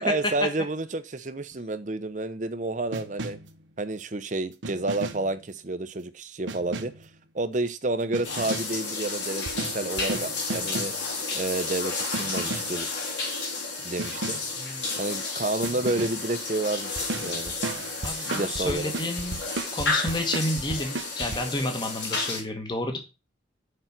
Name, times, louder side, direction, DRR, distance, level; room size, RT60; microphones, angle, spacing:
voice 1, 0.0-3.4 3.8-6.9 7.3-10.9 11.3-12.9 13.8-14.4 15.0-17.5 18.3-18.9, right 2 dB, 40° right, 0.7 m, -30 dB
sound 1, 2.9-3.6 4.6-5.4 6.5-7.1 8.1-8.8 9.5-11.1 12.1-12.8 14.0-14.5 15.6-16.3 17.0-21.4, right 2 dB, 90° right, 0.9 m, -34 dB
sound 2, 8.2-22.4, left 3 dB, 75° left, 3.8 m, -32 dB
voice 2, 14.6-15.0 18.0-23.0, left 1 dB, 25° left, 1.4 m, -31 dB
6.7 x 5.3 x 5.9 m
head